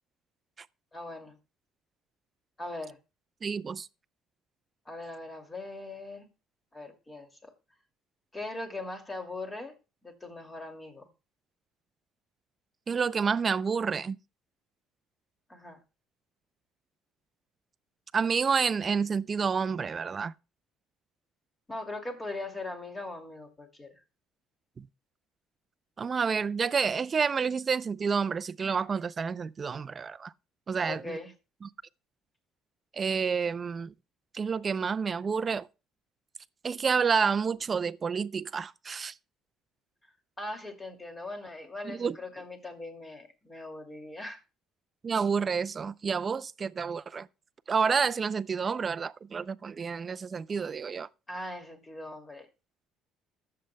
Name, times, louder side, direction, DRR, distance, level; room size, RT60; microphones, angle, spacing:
voice 1, 0.9-1.4 2.6-3.0 4.9-6.3 6.7-7.5 8.3-9.8 10.0-11.1 15.5-15.8 21.7-23.9 30.8-31.3 40.4-44.4 51.3-52.5, left 2 dB, 15° left, 2.4 m, -40 dB
voice 2, 3.4-3.9 12.9-14.2 18.1-20.3 24.8-24.9 26.0-30.3 30.7-31.2 31.6-31.7 32.9-33.9 34.3-35.7 36.6-39.1 41.8-42.2 45.0-47.3 47.7-51.1, right 6 dB, 30° right, 0.4 m, -29 dB
20.5 x 7.7 x 2.2 m
cardioid pair, 125°, 0 cm